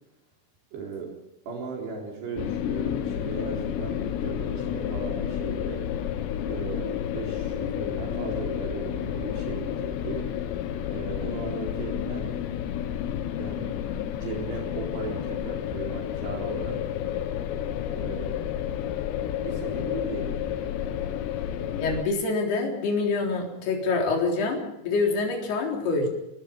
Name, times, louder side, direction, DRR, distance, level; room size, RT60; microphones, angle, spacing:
voice 1, 0.7-1.1 1.5-5.9 6.5-10.3 10.9-12.3 13.3-13.7 14.2-16.8 17.9-18.4 19.4-20.4, right 4 dB, 75° right, 0 dB, 6.0 m, -36 dB
sound 1, 2.4-22.0, left 10 dB, 90° left, 3.5 m, -30 dB
voice 2, 21.8-26.1, left 3 dB, 70° left, 0 dB, 5.7 m, -26 dB
28.0 x 19.0 x 5.3 m, 0.88 s
omnidirectional pair, 4.8 m